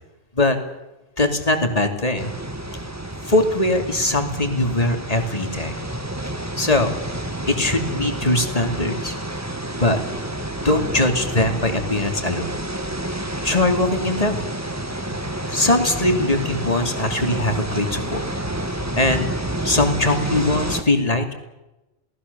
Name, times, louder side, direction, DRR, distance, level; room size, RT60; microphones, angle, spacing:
voice 1, 1.2-2.3 3.2-5.7 6.6-6.9 7.5-9.1 9.8-10.0 10.6-12.5 13.4-14.4 15.5-18.2 19.0-19.3 19.6-21.3, left 2 dB, 30° left, 5 dB, 2.8 m, -21 dB
sound 1, 2.2-20.8, right 1 dB, 15° right, 1.6 m, -29 dB
28.0 x 18.5 x 6.9 m, 1.0 s
omnidirectional pair, 1.3 m